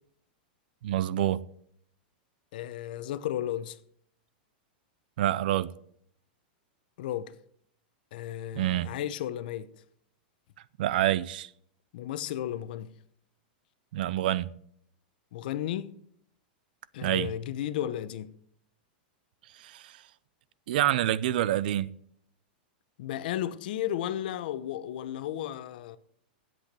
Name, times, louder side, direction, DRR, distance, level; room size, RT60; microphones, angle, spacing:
voice 1, 0.8-1.4 5.2-5.7 8.6-8.9 10.8-11.5 13.9-14.5 17.0-17.3 19.6-20.0 20.7-21.9, right 13 dB, 70° right, 0.6 m, -27 dB
voice 2, 2.5-3.8 7.0-7.4 8.1-9.7 11.9-12.9 15.3-16.0 16.9-18.3 23.0-26.0, left 11 dB, 65° left, 0.8 m, -34 dB
8.9 x 7.9 x 8.1 m
supercardioid pair, 145°, 5 cm